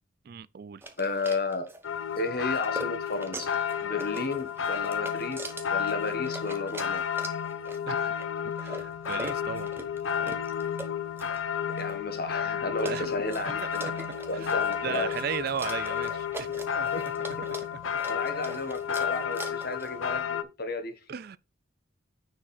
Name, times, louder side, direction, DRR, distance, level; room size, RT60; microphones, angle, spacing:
voice 1, 0.2-0.8 7.9-8.2 8.6-9.7 10.2-10.3 12.8-13.3 13.6-13.7 14.3-17.8 21.1-21.4, right 7 dB, 50° right, 0.4 m, -37 dB
sound 1, 0.8-20.0, right 2 dB, 10° right, 0.9 m, -43 dB
voice 2, 1.0-1.7 2.1-3.5 3.8-5.4 5.7-7.0 11.7-13.9 14.3-15.1 16.9-17.0 18.1-21.0, left 3 dB, 50° left, 1.4 m, -33 dB
sound 2, 1.8-20.4, left 8 dB, 80° left, 0.8 m, -32 dB
9.6 x 4.7 x 4.3 m
head